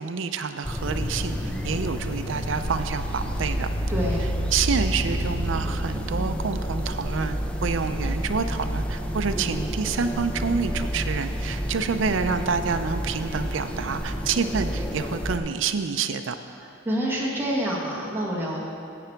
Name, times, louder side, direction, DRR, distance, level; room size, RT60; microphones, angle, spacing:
voice 1, 0.0-3.7 4.5-16.4, right 5 dB, 70° right, 8 dB, 0.5 m, -28 dB
sound 1, 0.6-15.4, equal, 5° left, 0.5 m, -29 dB
voice 2, 3.9-4.3 16.5-18.6, equal, 10° right, -5 dB, 1.5 m, -27 dB
11.0 x 7.8 x 4.5 m, 2.6 s
head